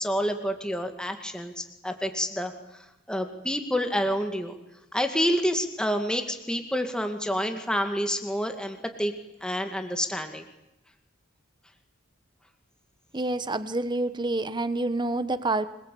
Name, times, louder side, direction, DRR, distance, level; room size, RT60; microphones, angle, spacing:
voice 1, 0.0-2.5 3.1-4.6 4.9-9.1 9.4-10.4, equal, 5° left, 5 dB, 2.2 m, -28 dB
voice 2, 13.1-15.7, right 2 dB, 20° right, 12 dB, 1.1 m, -27 dB
25.0 x 22.5 x 8.6 m, 0.91 s
head